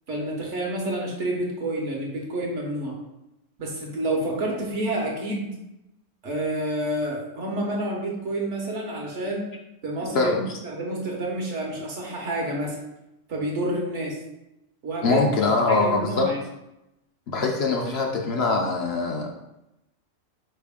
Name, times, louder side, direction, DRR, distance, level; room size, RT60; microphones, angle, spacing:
voice 1, 0.1-2.9 3.6-5.5 6.2-9.5 9.8-10.3 10.6-12.8 13.3-14.2 14.8-15.2 15.7-16.4, right 1 dB, 65° right, -1 dB, 1.3 m, -29 dB
voice 2, 10.1-10.6 15.0-16.3 17.3-19.4, left 3 dB, 60° left, 0 dB, 0.8 m, -23 dB
4.4 x 3.3 x 3.5 m, 0.90 s
omnidirectional pair, 1.3 m